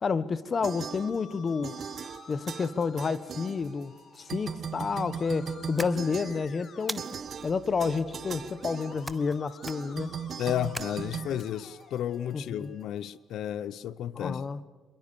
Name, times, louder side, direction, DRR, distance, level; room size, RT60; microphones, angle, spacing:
voice 1, 0.0-1.8 2.3-7.0 7.4-10.1 12.3-12.7 14.1-14.6, left 5 dB, 40° left, 1.3 m, -30 dB
sound 1, 0.6-1.4 1.6-4.0 4.3-12.2, right 7 dB, 55° right, 1.0 m, -39 dB
Musical instrument, 0.9-12.8, left 7 dB, 55° left, 1.9 m, -53 dB
sound 2, 5.8-6.4 6.9-7.5 9.1-9.4 9.6-10.1 10.7-11.4, right 1 dB, 5° right, 1.1 m, -39 dB
voice 2, 10.4-14.5, left 10 dB, 80° left, 0.7 m, -32 dB
26.5 x 23.0 x 7.0 m
cardioid pair, 90°, 0 cm